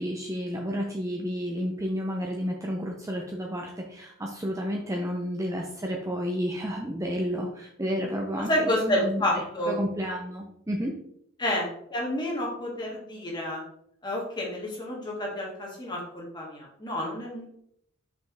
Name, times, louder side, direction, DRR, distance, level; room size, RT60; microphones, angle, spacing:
voice 1, 0.0-10.9, equal, 15° right, 1 dB, 0.5 m, -31 dB
voice 2, 8.5-9.7 11.4-13.6 14.0-17.5, left 1 dB, 20° left, -3 dB, 1.9 m, -29 dB
5.6 x 5.5 x 3.3 m, 0.71 s
head